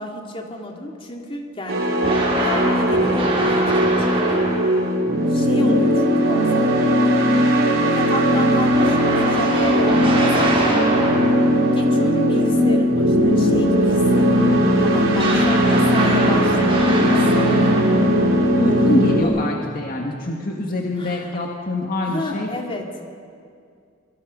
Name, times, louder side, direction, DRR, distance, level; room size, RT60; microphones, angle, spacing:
voice 1, 0.0-1.9 2.4-4.4 5.3-6.7 7.0-7.2 7.8-10.8 11.7-17.9 19.2-19.4 21.0-21.3 22.0-22.9, left 1 dB, 30° left, 1 dB, 2.7 m, -31 dB
sound 1, 1.7-19.2, equal, 80° right, 3.5 m, -18 dB
sound 2, 2.0-5.0 8.7-11.6 15.2-18.3, right 2 dB, 30° right, 4.4 m, -25 dB
voice 2, 18.6-22.5, left 1 dB, 45° left, 0 dB, 2.0 m, -25 dB
26.0 x 23.5 x 5.4 m, 2.3 s
head